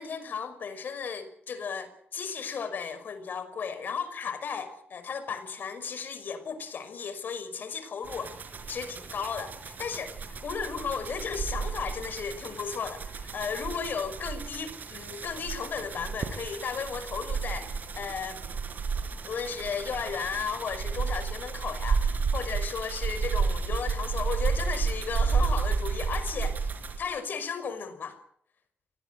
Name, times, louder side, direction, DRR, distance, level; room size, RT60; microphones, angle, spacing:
voice 1, 0.0-8.4 8.7-10.2 10.4-18.4 19.2-28.2, left 6 dB, 60° left, 5.6 m, -35 dB
sound 1, 8.0-27.0, right 5 dB, 55° right, 5.1 m, -32 dB
23.5 x 19.5 x 8.3 m
cardioid pair, 90°, 4 cm